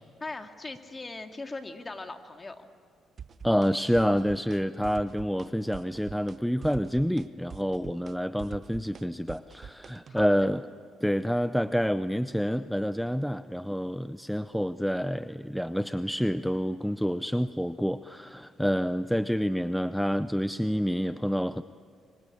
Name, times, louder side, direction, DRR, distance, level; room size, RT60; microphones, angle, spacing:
voice 1, 0.2-2.7 10.1-10.5, left 3 dB, 25° left, 6 dB, 2.1 m, -40 dB
sound 1, 3.2-3.7 3.9-4.6 4.8-5.5 5.7-6.4 6.6-10.3, right 7 dB, 50° right, 0.7 m, -44 dB
voice 2, 3.4-10.7 11.0-21.6, equal, ahead, 12 dB, 0.6 m, -28 dB
24.0 x 24.0 x 8.6 m, 2.2 s
cardioid pair, 90°, 0 cm